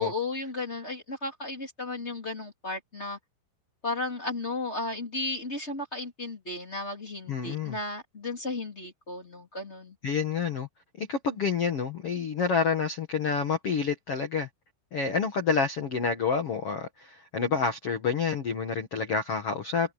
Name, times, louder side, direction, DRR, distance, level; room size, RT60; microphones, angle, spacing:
voice 1, 0.0-3.2 3.8-9.9, left 3 dB, 15° left, 2.8 m, -34 dB
voice 2, 7.3-7.8 10.0-10.7 11.0-14.5 14.9-19.9, left 5 dB, 75° left, 1.3 m, -28 dB
omnidirectional pair, 5.5 m